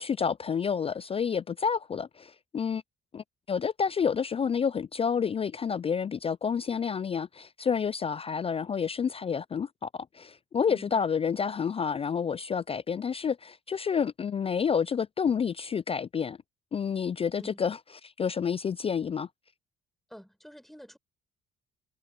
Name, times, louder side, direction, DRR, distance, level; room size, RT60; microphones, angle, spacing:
voice 1, 0.0-2.8 3.1-16.4 16.7-17.8 18.0-19.3, left 6 dB, 30° left, 0.4 m, -29 dB
voice 2, 10.7-11.0 17.4-17.6 20.1-21.0, equal, ahead, 7.2 m, -48 dB
supercardioid pair, 70°, 21 cm